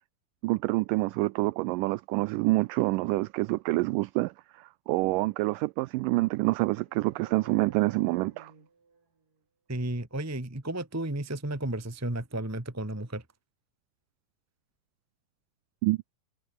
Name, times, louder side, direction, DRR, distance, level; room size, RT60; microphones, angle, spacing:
voice 1, 0.4-8.5 15.8-16.0, right 21 dB, 80° right, 1.9 m, -27 dB
sound 1, 6.8-9.4, right 4 dB, 60° right, 8.2 m, -53 dB
voice 2, 9.7-13.2, right 1 dB, 10° right, 0.8 m, -33 dB
omnidirectional pair, 4.3 m